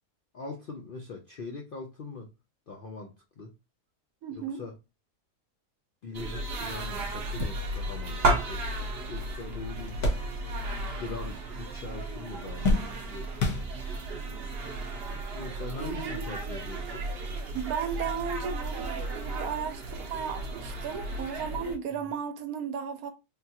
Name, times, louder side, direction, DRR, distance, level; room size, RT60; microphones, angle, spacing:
voice 1, 0.3-2.3 2.7-3.5 4.4-4.7 6.0-8.6 9.1-10.0 11.0-13.3 15.3-17.0 22.0-22.1, left 3 dB, 65° left, 0.5 m, -41 dB
voice 2, 4.2-4.6 15.8-16.3 17.5-23.1, right 7 dB, 75° right, 1.0 m, -35 dB
sound 1, 6.1-21.8, right 2 dB, 55° right, 0.8 m, -34 dB
sound 2, 7.1-10.8 11.1-11.8 12.1-14.2 14.9-15.0 16.3-16.5, left 2 dB, 85° left, 1.4 m, -32 dB
3.6 x 2.3 x 2.7 m
omnidirectional pair, 1.6 m